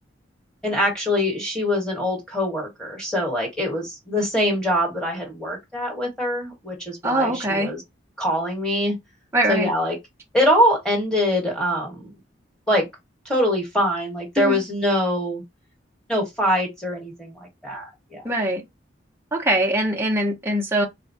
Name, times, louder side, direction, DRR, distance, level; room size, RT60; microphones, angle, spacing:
voice 1, 0.6-7.8 8.2-9.0 9.5-10.0 10.3-12.1 12.7-12.9 13.2-15.4 16.1-18.3, left 1 dB, 5° left, 1.3 m, -23 dB
voice 2, 7.0-7.7 9.3-9.7 14.4-14.6 18.2-18.6 19.3-20.9, right 1 dB, 15° right, 0.6 m, -22 dB
3.9 x 2.2 x 2.7 m
head